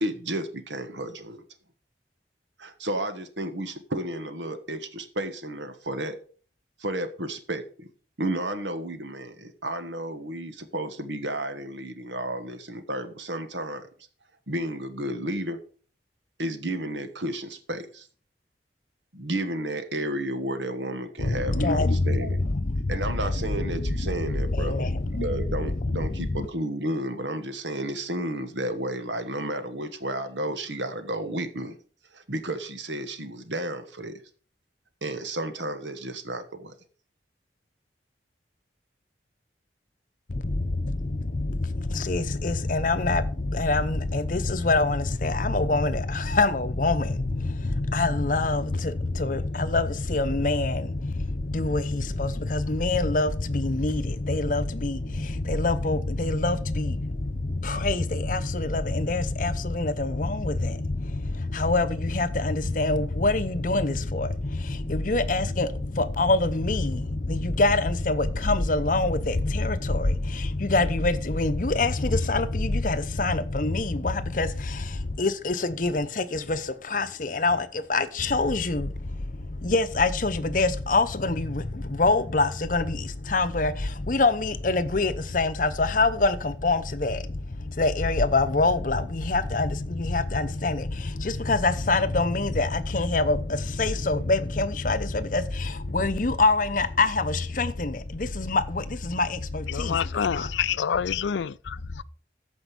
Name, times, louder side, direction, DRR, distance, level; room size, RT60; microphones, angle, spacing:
voice 1, 0.0-1.4 2.6-6.2 6.8-7.9 8.2-13.9 14.5-15.6 16.4-18.1 19.1-22.4 22.9-24.9 25.1-31.8 32.1-34.2 35.0-36.7, right 1 dB, 80° right, 1.5 m, -32 dB
voice 2, 21.2-26.5 40.3-100.1 100.3-100.5 101.9-102.0, left 2 dB, 45° left, 0.8 m, -25 dB
voice 3, 99.7-102.0, left 7 dB, 80° left, 0.4 m, -28 dB
14.5 x 5.3 x 5.3 m
head